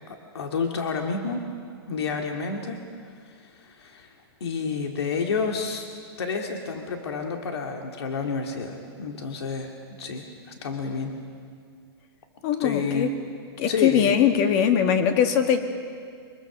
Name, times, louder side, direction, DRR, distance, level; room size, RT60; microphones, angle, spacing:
voice 1, 0.1-1.4 1.9-2.8 3.2-4.1 4.4-5.9 6.2-9.7 10.0-11.1 12.6-13.1 13.7-14.1, left 5 dB, 85° left, 3 dB, 2.3 m, -29 dB
voice 2, 12.4-13.1 13.6-15.6, left 8 dB, 40° left, 7 dB, 1.8 m, -21 dB
24.5 x 22.0 x 6.1 m, 2.2 s
hypercardioid pair, 150°, 13 cm